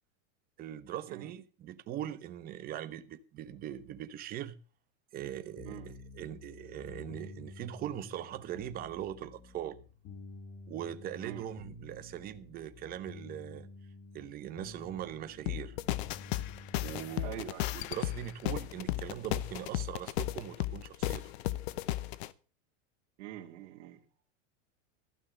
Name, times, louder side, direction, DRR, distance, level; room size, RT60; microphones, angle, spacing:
voice 1, 0.6-4.6 5.1-9.8 10.7-13.7 14.1-15.8 16.8-17.3 17.7-21.3, right 11 dB, 25° right, 0.9 m, -41 dB
sound 1, 5.6-17.4, left 3 dB, 35° left, 2.7 m, -50 dB
sound 2, 15.5-22.3, left 16 dB, 55° left, 0.8 m, -35 dB
voice 2, 17.2-17.7 23.2-24.0, right 12 dB, 60° right, 2.6 m, -44 dB
15.0 x 6.2 x 7.8 m
supercardioid pair, 165°, 37 cm